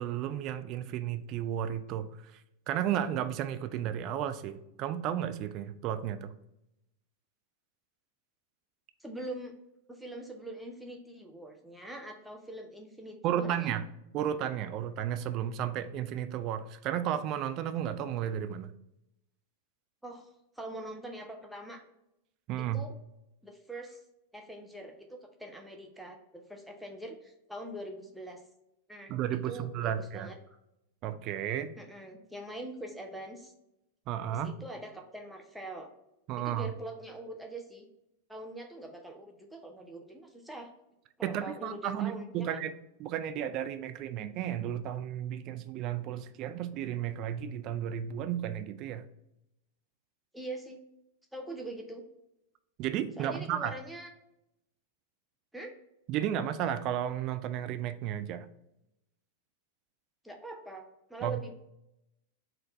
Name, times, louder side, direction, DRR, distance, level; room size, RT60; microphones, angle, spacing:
voice 1, 0.0-2.1 2.7-6.3 13.2-13.8 14.1-18.7 22.5-22.8 29.1-30.3 31.0-31.7 34.1-34.5 36.3-36.7 41.2-42.7 43.0-49.0 52.8-53.8 56.1-58.5 61.2-61.5, right 10 dB, 40° right, 11 dB, 0.3 m, -33 dB
voice 2, 9.0-9.5 9.9-13.7 20.0-20.3 20.6-21.8 22.7-22.9 23.4-24.0 24.3-28.4 28.9-29.1 29.4-30.6 31.8-33.5 34.3-35.9 36.4-37.8 38.3-40.7 41.2-42.6 50.3-50.8 51.3-52.0 53.2-54.1 55.5-55.7 60.2-61.5, right 1 dB, ahead, 1 dB, 0.7 m, -43 dB
4.2 x 2.6 x 4.2 m, 0.85 s
figure-of-eight pair, 95°, 0 cm